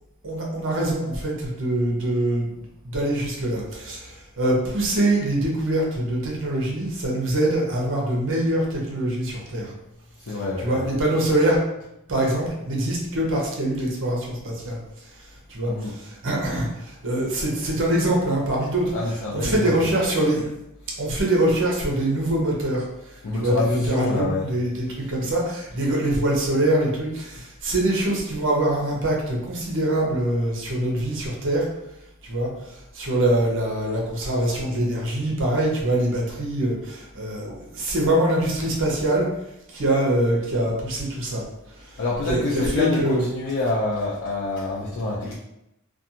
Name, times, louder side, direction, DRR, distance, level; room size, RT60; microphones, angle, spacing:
voice 1, 0.2-2.5 2.8-9.7 10.3-11.6 12.1-18.9 19.3-20.5 21.0-31.7 32.2-39.3 39.7-41.4 41.8-42.0 42.3-43.2, right 1 dB, 60° right, -2 dB, 0.7 m, -24 dB
voice 2, 10.2-10.9 15.7-15.9 18.9-19.7 23.2-24.4 42.0-45.4, left 2 dB, 60° left, -6 dB, 0.5 m, -26 dB
2.5 x 2.3 x 2.8 m, 0.85 s
head